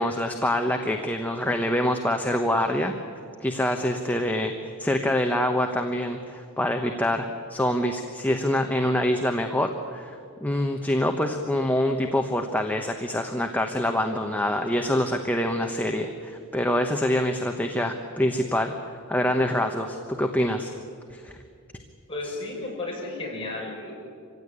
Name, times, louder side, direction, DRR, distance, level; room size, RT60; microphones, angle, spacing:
voice 1, 0.0-2.9 3.4-18.7 19.1-20.7 21.1-21.3, left 1 dB, 5° left, 4 dB, 1.0 m, -25 dB
voice 2, 22.1-23.9, left 2 dB, 25° left, -3 dB, 6.8 m, -33 dB
25.5 x 16.5 x 9.9 m, 2.4 s
head